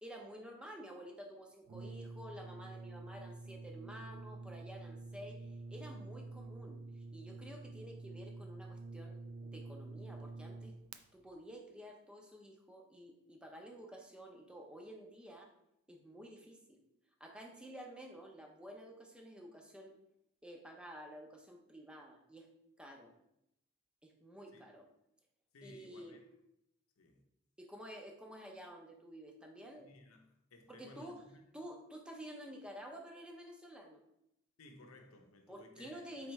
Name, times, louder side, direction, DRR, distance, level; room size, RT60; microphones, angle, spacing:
voice 1, 0.0-10.7 11.1-15.5 15.9-16.8 17.2-20.0 20.4-22.5 22.8-23.1 24.0-24.8 25.6-26.2 27.6-29.9 30.7-31.2 31.5-34.0 35.5-36.3, equal, 5° right, 0.5 m, -51 dB
Brass instrument, 1.7-11.0, right 3 dB, 85° right, 0.4 m, -48 dB
voice 2, 25.5-26.2 27.0-27.2 29.8-31.5 34.6-36.1, left 2 dB, 85° left, 0.7 m, -58 dB
4.4 x 3.4 x 3.1 m
head